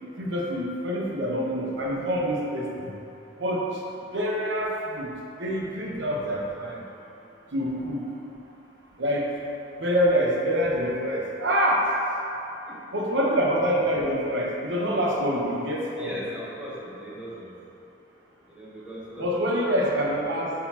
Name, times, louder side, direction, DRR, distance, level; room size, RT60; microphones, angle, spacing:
voice 1, 0.2-2.9 3.4-3.6 4.1-5.1 5.4-6.8 7.5-8.1 9.0-9.3 9.8-11.8 12.9-16.2 19.2-20.5, equal, 65° right, -2 dB, 1.0 m, -26 dB
voice 2, 15.9-17.5 18.5-19.4, right 1 dB, 5° right, -7 dB, 1.0 m, -39 dB
11.0 x 4.1 x 2.9 m, 2.9 s
head